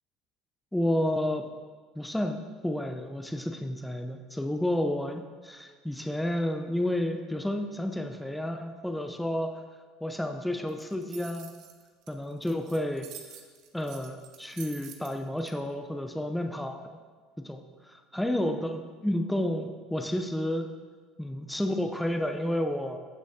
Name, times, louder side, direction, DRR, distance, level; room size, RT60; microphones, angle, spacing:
voice 1, 0.7-1.5 2.0-9.5 10.0-11.5 12.1-13.1 13.7-16.8 17.4-20.7 21.2-23.0, left 1 dB, 5° left, 5 dB, 0.6 m, -31 dB
sound 1, 10.7-15.5, right 9 dB, 60° right, 1.0 m, -48 dB
15.0 x 6.2 x 2.8 m, 1.5 s
hypercardioid pair, 90°, 0 cm